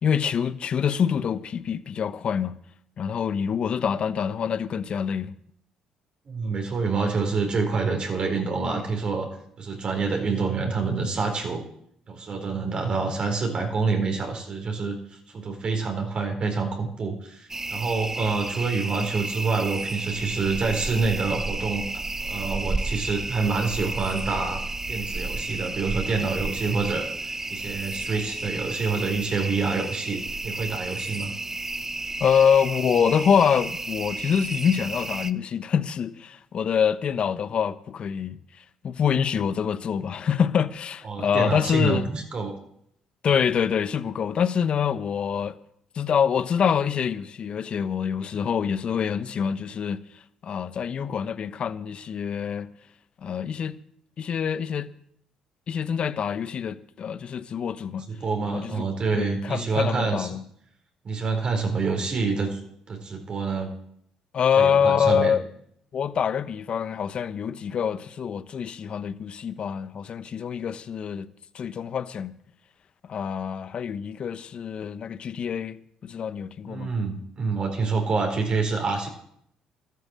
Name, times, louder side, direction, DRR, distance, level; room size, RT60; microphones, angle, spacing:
voice 1, 0.0-2.6 3.0-5.3 32.2-38.4 38.8-42.1 43.2-45.6 46.0-50.0 50.4-52.7 53.2-53.8 54.2-54.9 55.7-58.1 58.5-58.9 59.1-60.4 64.3-65.4 65.9-71.3 71.5-72.3 73.1-76.9, left 7 dB, 50° left, 0.9 m, -25 dB
voice 2, 6.3-9.3 9.6-11.6 12.1-24.6 24.9-31.3 41.0-42.6 58.1-60.3 61.0-62.6 62.9-63.7 64.6-65.3 76.7-79.1, right 4 dB, 45° right, 4.0 m, -27 dB
sound 1, 17.5-35.3, right 2 dB, 20° right, 0.8 m, -32 dB
13.0 x 9.4 x 7.5 m
supercardioid pair, 65°, 2 cm